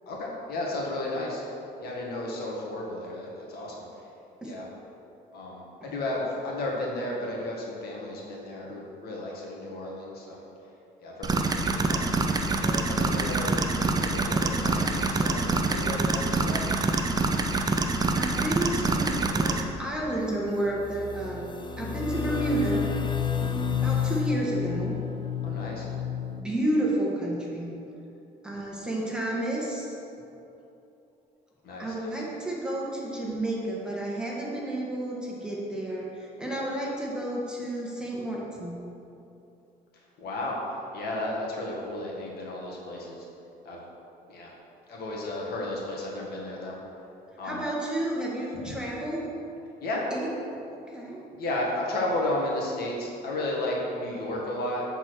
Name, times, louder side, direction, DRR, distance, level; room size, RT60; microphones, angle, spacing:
voice 1, 0.1-1.4 1.8-3.9 4.4-4.7 5.3-10.4 11.0-11.3 11.6-12.0 12.6-13.6 14.0-16.6 25.4-25.9 31.6-31.9 40.2-40.6 40.9-43.3 43.6-43.8 44.3-44.5 44.9-46.8 47.4-47.6 49.8-50.0 51.4-54.8, left 1 dB, 65° left, -3 dB, 1.8 m, -33 dB
sound 1, 11.2-19.6, right 3 dB, 25° right, 0.6 m, -26 dB
voice 2, 18.1-21.5 21.8-22.8 23.4-24.9 26.4-27.7 28.4-30.0 31.8-38.8 47.4-49.3 50.1-50.3 50.7-51.2, right 1 dB, 5° right, -5 dB, 1.7 m, -31 dB
sound 2, 19.0-19.5 20.1-20.2 20.5-26.4, left 8 dB, 25° left, 0.5 m, -31 dB
8.3 x 4.5 x 6.2 m, 2.8 s
cardioid pair, 110°, 17 cm